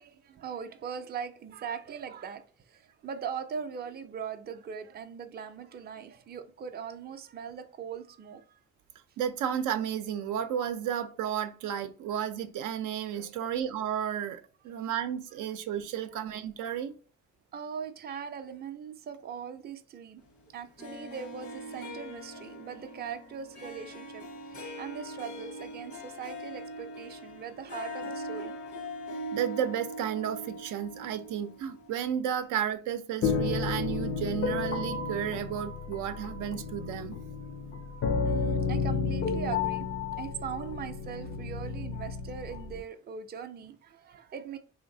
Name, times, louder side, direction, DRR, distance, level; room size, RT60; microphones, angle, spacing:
voice 1, 0.0-8.6 13.1-13.3 14.8-14.9 16.1-16.2 17.5-20.2 20.5-28.9 32.0-32.1 37.4-37.5 37.9-39.9 40.2-44.6, right 7 dB, 35° right, 0.4 m, -40 dB
voice 2, 9.2-16.9 29.3-37.2, right 9 dB, 90° right, 0.5 m, -32 dB
Harp, 20.8-31.9, equal, 75° left, 1.1 m, -41 dB
sound 1, 33.2-42.8, left 4 dB, 45° left, 0.4 m, -32 dB
3.2 x 2.8 x 2.6 m
cardioid pair, 90°, 30 cm